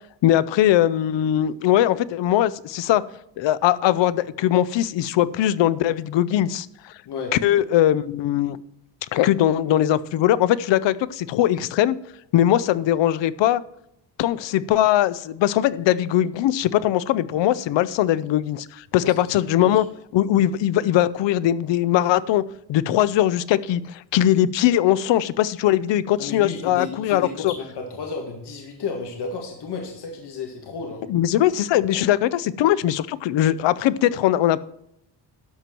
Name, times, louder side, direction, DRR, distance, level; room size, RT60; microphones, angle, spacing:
voice 1, 0.2-3.0 3.4-6.9 7.3-8.6 9.1-12.0 12.3-13.6 14.2-19.8 20.1-22.4 22.7-27.5 31.1-34.6, left 12 dB, 85° left, 18 dB, 0.6 m, -20 dB
voice 2, 19.5-19.8 26.2-31.0, left 4 dB, 65° left, 2 dB, 1.8 m, -32 dB
12.0 x 4.5 x 7.5 m, 0.76 s
cardioid pair, 135°, 43 cm